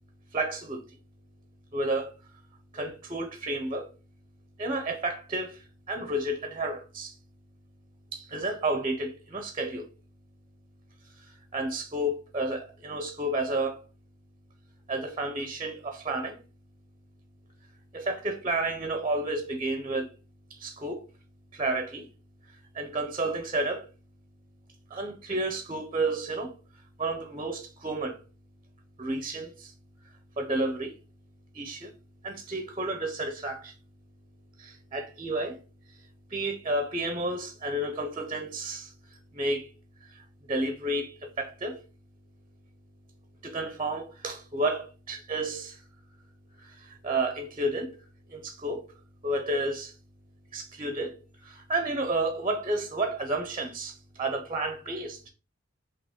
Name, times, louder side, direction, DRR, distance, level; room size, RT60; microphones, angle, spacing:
voice 1, 0.3-0.8 1.7-2.2 2.7-3.9 4.6-7.2 8.1-9.9 11.0-13.9 14.9-16.4 17.9-20.1 20.5-21.0 21.5-22.1 22.5-23.9 24.9-28.2 29.0-29.7 30.0-31.0 31.5-31.9 32.2-33.8 34.6-35.6 35.9-39.7 40.0-41.8 43.4-45.8 46.6-48.9 49.2-49.9 50.5-55.3, right 2 dB, 25° right, 0.5 m, -31 dB
5.1 x 2.9 x 3.4 m
head